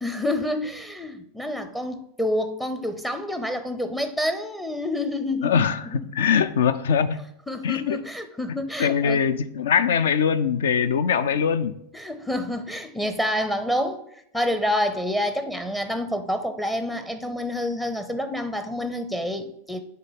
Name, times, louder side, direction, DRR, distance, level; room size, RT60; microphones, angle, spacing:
voice 1, 0.0-5.7 6.0-6.1 7.5-9.2 11.9-19.8, left 1 dB, 5° left, 0.6 m, -28 dB
voice 2, 5.4-7.2 7.6-8.0 8.5-11.8, left 7 dB, 60° left, 0.4 m, -22 dB
8.3 x 3.4 x 5.1 m
figure-of-eight pair, 90°, 0 cm